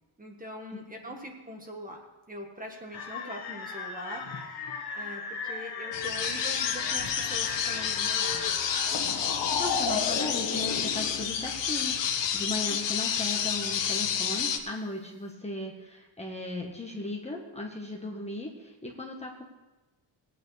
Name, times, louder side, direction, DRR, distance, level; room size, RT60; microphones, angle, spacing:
voice 1, 0.2-2.0 2.3-4.2 4.9-8.6 12.7-12.8, equal, 20° right, 2 dB, 1.4 m, -42 dB
voice 2, 0.7-1.1 9.6-19.4, left 2 dB, 15° left, 0 dB, 1.1 m, -37 dB
sound 1, 2.9-11.3, left 5 dB, 55° left, 1.4 m, -35 dB
sound 2, 5.9-14.6, left 8 dB, 70° left, 1.2 m, -29 dB
19.0 x 8.9 x 3.3 m, 1.1 s
cardioid pair, 145°, 45 cm